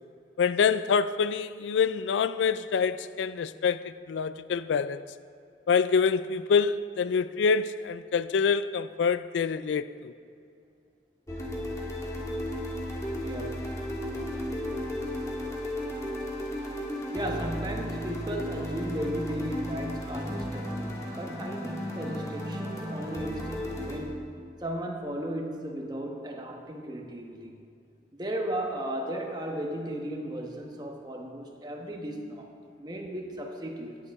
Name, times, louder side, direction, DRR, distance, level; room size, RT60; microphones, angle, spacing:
voice 1, 0.4-5.0 5.7-10.1, left 6 dB, 85° left, 0.3 m, -26 dB
sound 1, 11.3-24.0, left 1 dB, 15° left, 1.7 m, -34 dB
voice 2, 13.2-13.8 17.1-24.3 24.6-27.5 28.1-32.5 32.8-34.0, right 1 dB, 25° right, 1.1 m, -35 dB
14.0 x 9.8 x 3.6 m
head